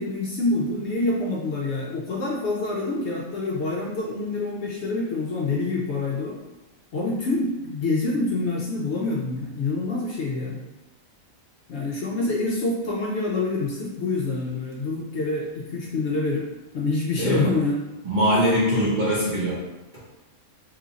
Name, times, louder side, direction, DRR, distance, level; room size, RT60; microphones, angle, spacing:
voice 1, 0.0-6.4 6.9-10.6 11.7-16.5 16.7-17.8, left 3 dB, 65° left, -3 dB, 0.7 m, -26 dB
voice 2, 17.2-17.5 18.0-19.6 19.9-20.0, equal, 40° right, -7 dB, 0.8 m, -22 dB
3.1 x 2.4 x 3.9 m, 1.1 s
omnidirectional pair, 1.5 m